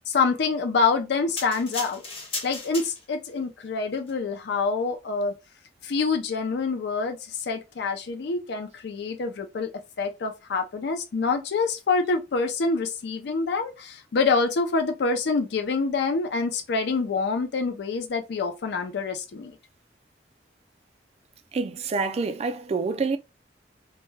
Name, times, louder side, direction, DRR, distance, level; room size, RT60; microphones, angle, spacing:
voice 1, 0.1-2.0 2.4-5.3 5.8-9.7 10.0-19.6, left 4 dB, 65° left, 0.4 m, -26 dB
sound 1, 1.4-3.3 4.0-4.1, left 3 dB, 35° left, 0.7 m, -35 dB
voice 2, 21.5-23.2, right 4 dB, 35° right, 0.3 m, -27 dB
2.1 x 2.1 x 3.1 m
head